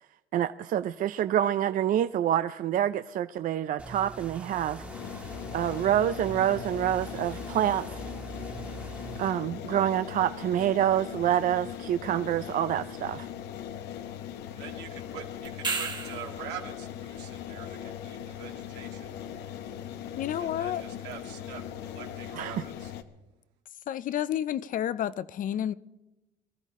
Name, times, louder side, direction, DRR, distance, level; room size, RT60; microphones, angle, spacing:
voice 1, 0.3-4.8 5.5-8.0 9.2-13.3 22.3-22.5, right 11 dB, 55° right, 0.5 m, -27 dB
sound 1, 3.8-9.3, right 2 dB, 10° right, 1.5 m, -42 dB
sound 2, 4.8-23.0, left 10 dB, 85° left, 1.0 m, -40 dB
voice 2, 14.5-19.1 20.4-22.9, right 9 dB, 85° right, 2.3 m, -44 dB
sound 3, 15.4-16.4 21.1-21.2, right 4 dB, 25° right, 1.5 m, -32 dB
voice 3, 20.2-20.8 23.9-25.7, left 10 dB, 50° left, 0.5 m, -30 dB
24.0 x 13.5 x 3.7 m
cardioid pair, 110°, 17 cm